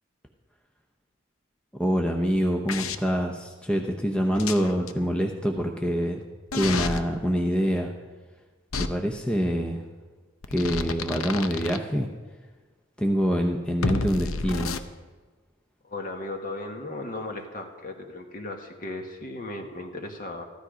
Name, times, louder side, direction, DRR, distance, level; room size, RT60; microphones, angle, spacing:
voice 1, 1.7-6.2 6.5-7.9 8.8-9.9 10.5-12.1 13.0-14.7, equal, 5° left, 2 dB, 0.8 m, -25 dB
sound 1, 2.7-3.0 4.3-4.9 6.5-7.0 8.7-8.9 10.4-11.8 13.8-14.8, left 4 dB, 85° left, 0.8 m, -30 dB
voice 2, 15.8-20.4, left 2 dB, 40° left, 3 dB, 1.6 m, -36 dB
14.5 x 13.0 x 5.0 m, 1.4 s
head